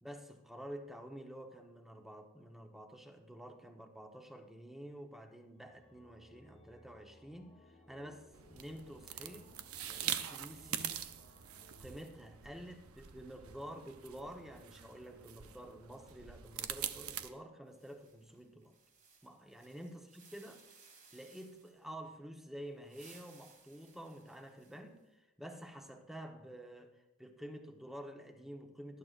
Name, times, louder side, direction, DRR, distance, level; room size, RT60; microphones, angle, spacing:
voice 1, 0.0-9.5 9.8-11.1 11.8-18.7 19.2-20.6 21.1-29.0, equal, ahead, 3 dB, 1.1 m, -49 dB
sound 1, 5.6-13.1, left 1 dB, 30° left, 1.4 m, -63 dB
sound 2, 8.3-17.3, right 10 dB, 80° right, 0.7 m, -44 dB
sound 3, 17.7-21.9 22.7-25.0, right 5 dB, 40° right, 1.9 m, -63 dB
19.0 x 10.5 x 2.5 m, 1.0 s
head